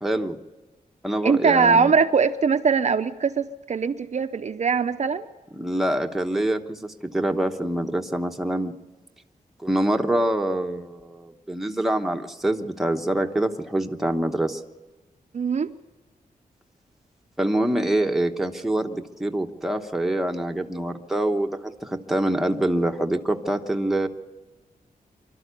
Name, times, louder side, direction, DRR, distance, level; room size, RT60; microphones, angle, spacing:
voice 1, 0.0-0.4 1.0-1.9 5.6-8.7 9.6-14.6 17.4-24.1, right 1 dB, ahead, 3 dB, 1.0 m, -25 dB
voice 2, 1.2-5.3 15.3-15.7, right 5 dB, 50° right, 8 dB, 0.6 m, -21 dB
25.0 x 12.5 x 8.3 m, 1.2 s
wide cardioid pair, 145°, 15 cm